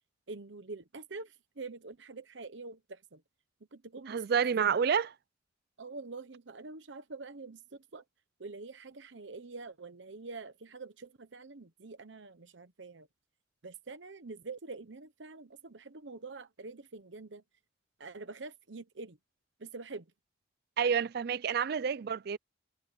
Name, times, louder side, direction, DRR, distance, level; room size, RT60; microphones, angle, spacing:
voice 1, 0.3-3.2 3.7-4.7 5.8-8.0 8.4-13.1 13.6-17.4 18.0-19.2 19.6-20.1, right 3 dB, 70° right, 1.0 m, -46 dB
voice 2, 4.1-5.1 20.8-22.4, right 7 dB, 55° right, 0.4 m, -29 dB
head